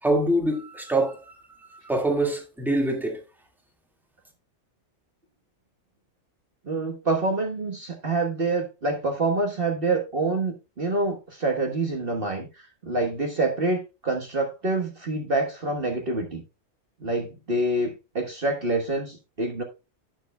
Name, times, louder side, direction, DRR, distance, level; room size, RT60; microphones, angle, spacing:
voice 1, 0.0-3.2, right 1 dB, ahead, 2.0 m, -25 dB
voice 2, 6.7-16.4 17.0-19.6, right 2 dB, 45° right, 1.6 m, -26 dB
11.0 x 9.5 x 2.3 m
omnidirectional pair, 1.4 m